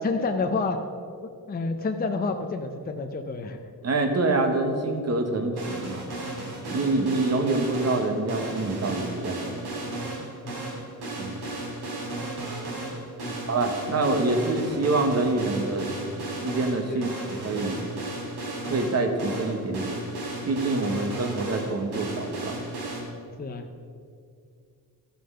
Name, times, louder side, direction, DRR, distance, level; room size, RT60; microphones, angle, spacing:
voice 1, 0.0-0.8 1.5-3.6 10.4-10.7 13.2-13.5 16.9-17.1 20.9-21.0 23.4-23.6, left 3 dB, 25° left, 5 dB, 0.6 m, -29 dB
voice 2, 3.8-6.1 6.7-10.0 11.2-11.5 13.5-15.9 16.2-17.1 17.4-17.8 18.7-20.1 20.4-22.6, right 2 dB, 40° right, 5 dB, 1.3 m, -26 dB
sound 1, 5.6-23.0, right 2 dB, 85° right, 3.1 m, -34 dB
13.0 x 6.6 x 5.5 m, 2.3 s
wide cardioid pair, 130°, 37 cm